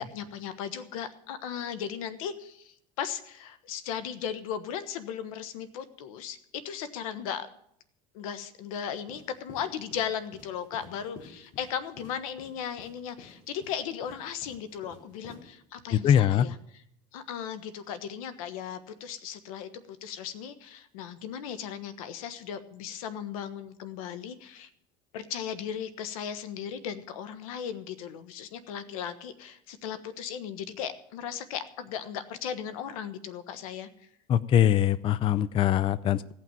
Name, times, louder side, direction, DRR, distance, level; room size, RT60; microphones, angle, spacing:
voice 1, 0.0-7.5 8.1-16.8 17.1-24.7 25.1-33.9, left 8 dB, 90° left, 13 dB, 1.3 m, -37 dB
sound 1, 8.9-15.4, left 3 dB, 50° left, 4.6 m, -51 dB
voice 2, 15.9-16.5 34.3-36.3, left 10 dB, 30° left, 17 dB, 0.4 m, -23 dB
16.5 x 5.9 x 9.1 m, 0.71 s
supercardioid pair, 130°, 17 cm